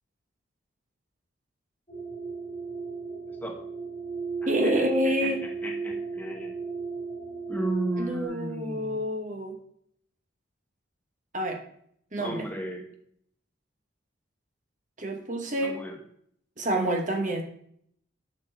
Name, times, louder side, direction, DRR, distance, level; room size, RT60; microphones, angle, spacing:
sound 1, 1.9-8.2, right 4 dB, 30° left, 1.6 m, -34 dB
voice 1, 3.3-3.6 4.4-6.6 7.5-9.2 12.2-12.9 15.6-16.0, right 1 dB, 10° left, 2 dB, 0.8 m, -35 dB
voice 2, 4.5-5.4 8.0-9.6 11.3-11.6 12.1-12.4 15.0-15.8 16.6-17.4, right 1 dB, 40° right, 4 dB, 1.1 m, -28 dB
9.5 x 6.5 x 3.3 m, 0.67 s
head